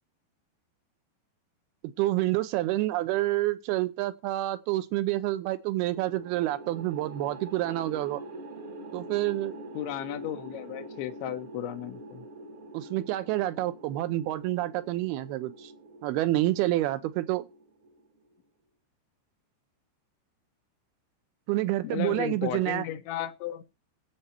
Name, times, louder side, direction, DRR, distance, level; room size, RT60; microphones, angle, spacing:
voice 1, 1.8-8.2 8.9-9.6 12.7-15.7 16.0-17.5 21.5-22.9, right 16 dB, 75° right, 2.5 m, -28 dB
sound 1, 5.9-18.3, right 2 dB, 50° right, 1.6 m, -45 dB
voice 2, 9.7-12.2 21.8-23.6, left 11 dB, 85° left, 3.4 m, -35 dB
15.5 x 8.1 x 4.5 m
omnidirectional pair, 5.2 m